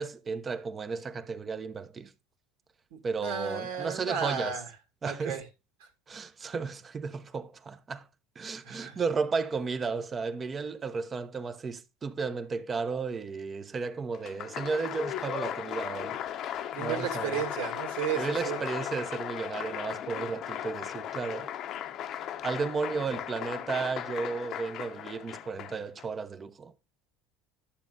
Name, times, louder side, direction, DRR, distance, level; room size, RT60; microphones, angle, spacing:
voice 1, 0.0-2.1 3.0-4.6 5.0-5.4 6.1-8.1 8.4-16.2 16.5-17.4 18.1-21.5 22.1-26.7, right 4 dB, 25° right, 0.9 m, -34 dB
voice 2, 2.9-4.7 5.0-5.4 8.6-9.0 16.7-18.6, right 7 dB, 80° right, 2.5 m, -34 dB
Applause, 14.1-26.0, left 10 dB, 50° left, 0.8 m, -37 dB
11.5 x 7.3 x 2.7 m
supercardioid pair, 110°, 0 cm